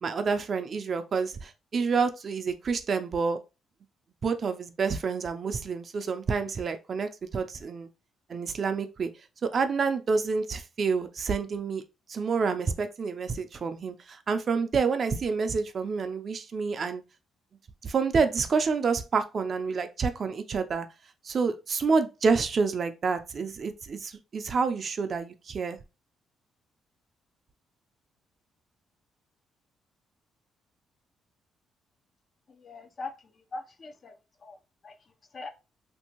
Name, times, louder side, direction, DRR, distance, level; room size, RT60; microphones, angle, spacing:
voice 1, 0.0-3.4 4.2-7.9 8.3-9.1 9.4-11.8 12.1-17.0 17.8-20.9 21.2-25.8, right 5 dB, 45° right, 0.4 m, -28 dB
voice 2, 32.5-34.2 34.4-34.6 34.8-34.9 35.3-35.5, left 3 dB, 45° left, 0.5 m, -41 dB
2.8 x 2.6 x 2.8 m
cardioid pair, 90°, 0 cm